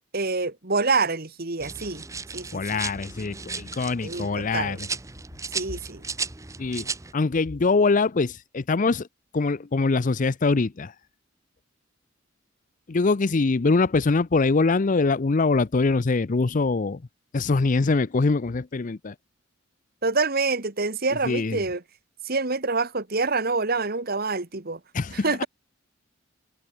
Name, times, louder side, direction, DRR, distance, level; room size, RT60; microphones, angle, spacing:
voice 1, 0.1-2.0 2.3-2.8 4.0-4.8 5.5-6.0 20.0-21.8 22.2-24.8 25.1-25.5, right 3 dB, 50° right, 1.9 m, -26 dB
sound 1, 1.6-7.1, right 4 dB, 15° right, 0.9 m, -35 dB
voice 2, 2.5-4.9 6.6-6.9 7.1-9.1 9.3-10.9 12.9-17.0 17.3-19.1 21.2-21.6 24.9-25.3, left 3 dB, 40° left, 0.5 m, -23 dB
head